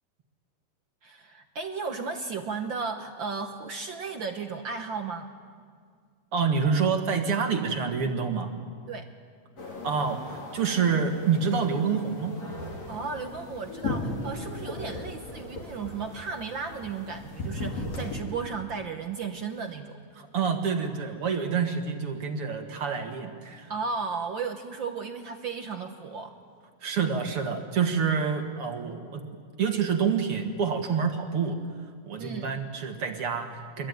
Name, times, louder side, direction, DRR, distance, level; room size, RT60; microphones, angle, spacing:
voice 1, 1.0-5.3 8.9-9.1 12.9-20.1 23.7-26.4 32.2-32.5, right 5 dB, 70° right, 5 dB, 1.1 m, -35 dB
voice 2, 6.3-8.5 9.8-12.3 20.2-23.7 26.8-29.2 29.6-31.6 32.1-33.9, right 6 dB, 50° right, 4 dB, 2.2 m, -27 dB
sound 1, 9.6-18.2, left 2 dB, 50° left, 5.5 m, -37 dB
26.5 x 23.0 x 9.5 m, 2.1 s
omnidirectional pair, 3.7 m